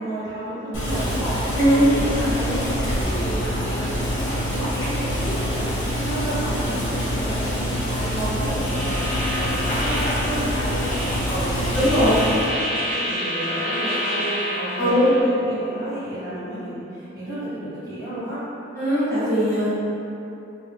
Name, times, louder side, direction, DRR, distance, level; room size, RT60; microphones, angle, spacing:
voice 1, 0.0-18.4, right 1 dB, 20° right, -14 dB, 1.1 m, -32 dB
Boiling, 0.7-12.5, equal, 75° left, 1.4 m, -25 dB
voice 2, 1.5-1.9 11.7-12.1 14.8-15.1 18.8-19.7, equal, 15° left, -14 dB, 1.4 m, -19 dB
sound 1, 8.4-15.2, equal, 35° left, 1.5 m, -29 dB
3.6 x 2.9 x 3.3 m, 2.9 s
head